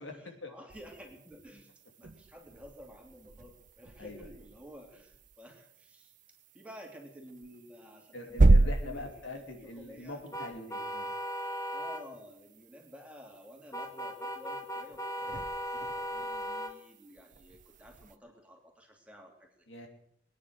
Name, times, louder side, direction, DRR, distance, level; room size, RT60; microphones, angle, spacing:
voice 1, 0.0-1.7 2.0-6.1 6.5-10.3 11.7-19.5, equal, 5° right, 0 dB, 2.9 m, -52 dB
sound 1, 0.7-18.2, right 2 dB, 45° right, 0.7 m, -33 dB
voice 2, 8.1-11.1 19.7-19.9, left 2 dB, 75° left, 3 dB, 2.9 m, -43 dB
sound 2, 10.3-12.0 13.7-16.7, equal, 15° left, 1.3 m, -37 dB
22.0 x 9.9 x 6.5 m, 0.72 s
head